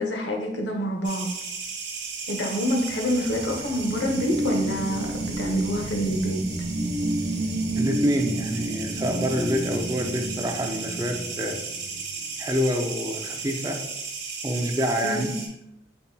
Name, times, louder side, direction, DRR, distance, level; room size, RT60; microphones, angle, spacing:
voice 1, 0.0-1.3 2.3-6.4 15.0-15.3, equal, 85° left, 2 dB, 0.9 m, -27 dB
sound 1, 1.0-15.5, right 5 dB, 80° right, 1.3 m, -36 dB
sound 2, 2.9-12.1, right 1 dB, 55° right, 1.4 m, -30 dB
voice 2, 7.8-11.6 12.4-13.8 14.4-15.3, equal, 20° right, 3 dB, 0.4 m, -27 dB
5.7 x 4.0 x 2.2 m, 0.85 s
head